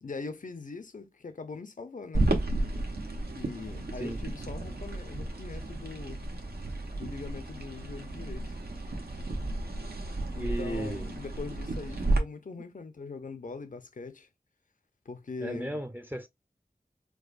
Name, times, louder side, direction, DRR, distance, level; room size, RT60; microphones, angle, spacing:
voice 1, 0.0-2.3 3.2-6.2 7.0-8.6 10.3-14.3 15.1-15.8, left 4 dB, 55° left, 0.6 m, -41 dB
sound 1, 2.1-12.2, right 2 dB, 80° right, 0.9 m, -33 dB
voice 2, 10.4-11.1 15.4-16.3, right 1 dB, 10° right, 0.5 m, -35 dB
4.7 x 2.1 x 2.4 m
wide cardioid pair, 50°, 16 cm